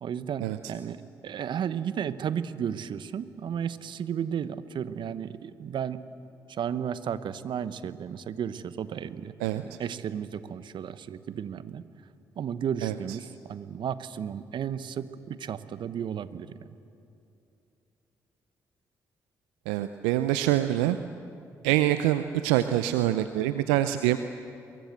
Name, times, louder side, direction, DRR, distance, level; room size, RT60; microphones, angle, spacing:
voice 1, 0.0-6.0 6.5-11.8 12.4-16.5, right 8 dB, 60° right, 14 dB, 1.1 m, -33 dB
voice 2, 19.7-21.0 21.6-24.2, right 14 dB, 80° right, 11 dB, 0.6 m, -25 dB
24.0 x 23.0 x 8.1 m, 2.7 s
hypercardioid pair, 45°, 9 cm